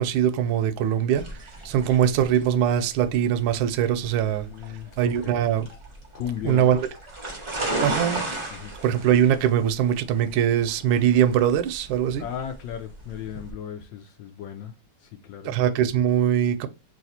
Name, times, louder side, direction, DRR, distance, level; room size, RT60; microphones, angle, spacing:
voice 1, 0.0-4.5 5.0-5.7 6.4-6.9 7.8-8.2 8.8-12.3 15.4-16.7, right 9 dB, 75° right, 1.3 m, -22 dB
sound 1, 1.1-13.5, right 2 dB, 30° right, 0.5 m, -35 dB
voice 2, 4.2-5.3 6.1-6.7 8.5-8.7 12.2-14.7 15.0-15.5, left 9 dB, 75° left, 1.1 m, -36 dB
3.2 x 3.0 x 4.1 m
omnidirectional pair, 2.3 m